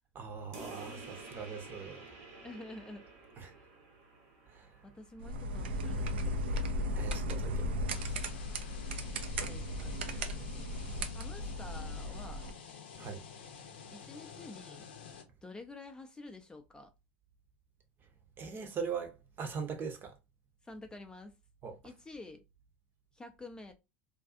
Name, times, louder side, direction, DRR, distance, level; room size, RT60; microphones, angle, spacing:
voice 1, 0.1-2.0 3.4-3.5 4.5-4.7 7.0-8.0 13.0-13.3 18.4-20.2 21.6-21.8, right 6 dB, 35° right, 0.7 m, -41 dB
sound 1, 0.5-5.6, right 3 dB, 60° right, 1.1 m, -51 dB
voice 2, 2.4-3.1 3.5-3.7 4.8-6.8 9.4-9.9 11.1-12.4 13.9-14.9 15.4-16.9 20.6-21.3 21.8-22.4 23.1-23.7, left 2 dB, 15° left, 0.5 m, -49 dB
sound 2, 5.2-12.5, left 1 dB, 80° right, 0.5 m, -36 dB
sound 3, 7.9-15.2, left 6 dB, 80° left, 0.6 m, -50 dB
2.6 x 2.3 x 2.5 m
hypercardioid pair, 90°, 6 cm